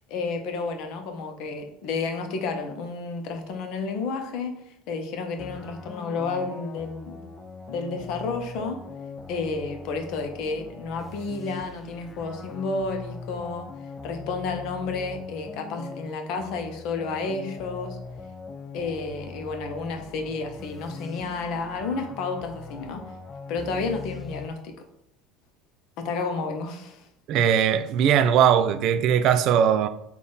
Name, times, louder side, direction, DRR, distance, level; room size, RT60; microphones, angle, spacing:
voice 1, 0.1-7.2 7.7-8.8 9.3-13.7 14.0-18.0 18.7-23.0 23.5-24.7 26.0-27.1, left 4 dB, 65° left, 0.7 m, -31 dB
sound 1, 5.4-24.5, left 4 dB, 25° left, 0.4 m, -41 dB
voice 2, 27.3-29.9, right 8 dB, 55° right, 0.3 m, -20 dB
3.5 x 2.3 x 3.9 m
supercardioid pair, 105°, 0 cm